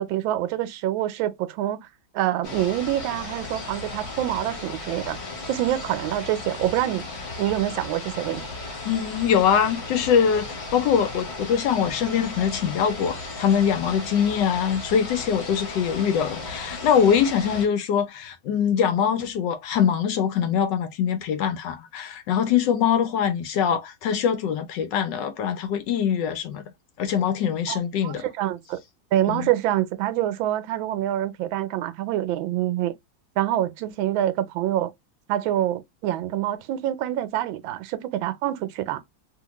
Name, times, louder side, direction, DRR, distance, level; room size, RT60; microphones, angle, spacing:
voice 1, 0.0-1.9 2.1-5.2 5.5-7.1 7.4-8.5 27.7-27.8 28.0-28.8 29.1-32.9 33.4-34.9 35.3-39.0, right 13 dB, 85° right, 1.3 m, -26 dB
sound 1, 2.4-17.7, left 3 dB, 45° left, 1.0 m, -36 dB
voice 2, 8.9-26.6 27.0-28.3 29.3-29.5, left 8 dB, 75° left, 1.1 m, -23 dB
2.8 x 2.7 x 2.9 m
omnidirectional pair, 2.1 m